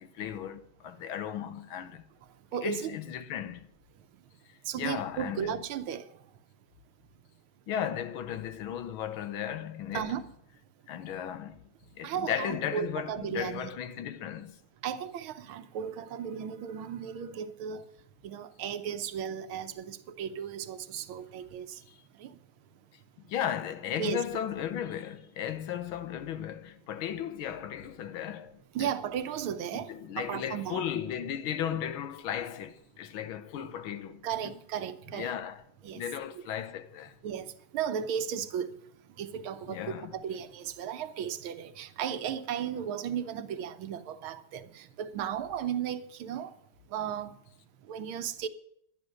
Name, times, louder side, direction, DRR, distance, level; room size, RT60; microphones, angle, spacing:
voice 1, 0.0-2.0 2.6-3.7 4.7-5.6 7.7-10.2 10.9-11.6 12.0-14.6 23.3-28.9 29.7-34.5 35.1-35.6 35.9-37.1 39.7-40.1, left 9 dB, 75° left, 1.6 m, -35 dB
voice 2, 2.5-2.9 4.7-6.1 9.9-10.3 12.0-13.7 14.8-17.8 18.2-21.8 22.2-22.3 24.0-24.2 28.7-30.8 34.2-35.4 35.8-36.0 36.3-36.4 37.2-38.8 39.2-46.5 46.9-47.3 47.9-48.5, right 8 dB, 75° right, 1.6 m, -35 dB
11.5 x 10.5 x 6.4 m
omnidirectional pair, 2.3 m